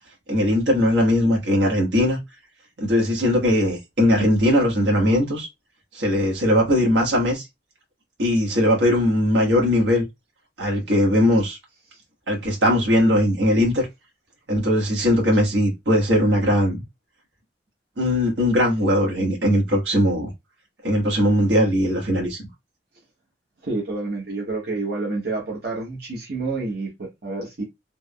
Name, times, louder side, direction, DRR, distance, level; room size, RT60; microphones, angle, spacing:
voice 1, 0.3-2.2 2.8-5.5 5.9-7.4 8.2-10.0 10.6-11.6 12.3-13.9 14.5-16.8 18.0-20.3 20.8-22.4, left 1 dB, 85° right, 1.2 m, -19 dB
voice 2, 23.6-27.6, right 3 dB, 65° right, 0.9 m, -29 dB
3.3 x 2.0 x 2.2 m
head